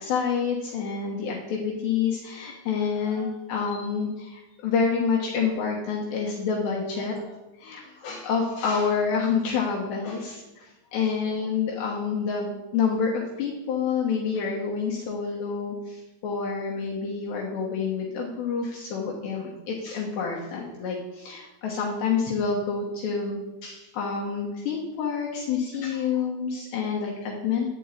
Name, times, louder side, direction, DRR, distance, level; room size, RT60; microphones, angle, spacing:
voice 1, 0.0-27.7, left 5 dB, 70° left, -2 dB, 3.0 m, -28 dB
11.5 x 5.4 x 8.3 m, 1.0 s
omnidirectional pair, 5.9 m